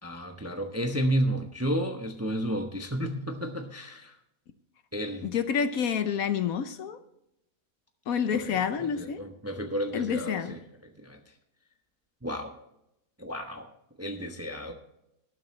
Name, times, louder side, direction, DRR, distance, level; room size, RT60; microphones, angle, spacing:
voice 1, 0.0-4.1 4.9-5.3 8.3-10.6 11.0-11.2 12.2-12.5 13.2-13.7 14.0-14.7, equal, 10° right, 4 dB, 0.8 m, -32 dB
voice 2, 5.2-7.0 8.1-9.2 9.9-10.5, left 7 dB, 65° left, 10 dB, 1.1 m, -28 dB
18.5 x 7.7 x 3.2 m, 0.84 s
omnidirectional pair, 1.7 m